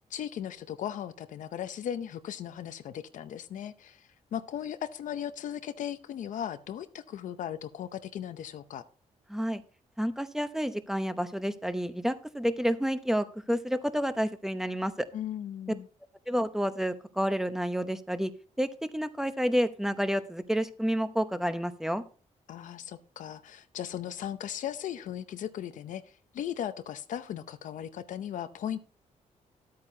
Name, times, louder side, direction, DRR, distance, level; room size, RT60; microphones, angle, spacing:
voice 1, 0.1-8.8 15.1-15.9 22.5-28.8, left 10 dB, 75° left, 11 dB, 0.7 m, -37 dB
voice 2, 9.3-9.6 10.0-15.1 16.3-18.3 18.6-22.0, equal, 5° right, 10 dB, 0.8 m, -29 dB
12.0 x 8.7 x 2.8 m, 0.38 s
cardioid pair, 95°, 13 cm